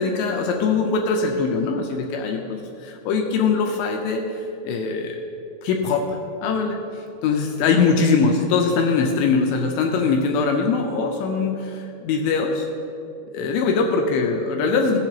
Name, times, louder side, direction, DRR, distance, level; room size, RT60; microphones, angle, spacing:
voice 1, 0.0-4.2 4.6-5.2 5.6-6.8 7.2-12.7 13.3-15.0, left 4 dB, 85° left, 2 dB, 2.9 m, -22 dB
18.0 x 7.3 x 2.9 m, 2.7 s
omnidirectional pair, 5.2 m